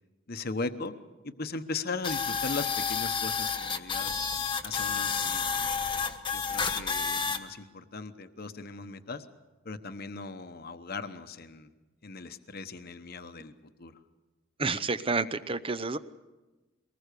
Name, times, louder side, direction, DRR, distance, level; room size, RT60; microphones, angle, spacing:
voice 1, 0.3-0.9 1.2-4.1 4.6-5.7 6.3-9.3 9.6-11.7 12.0-13.9, left 3 dB, 50° left, 9 dB, 1.0 m, -38 dB
sound 1, 2.0-7.4, left 6 dB, 25° left, 1.3 m, -30 dB
voice 2, 14.6-16.0, right 3 dB, 30° right, 14 dB, 0.7 m, -29 dB
23.5 x 19.5 x 6.8 m, 1.2 s
head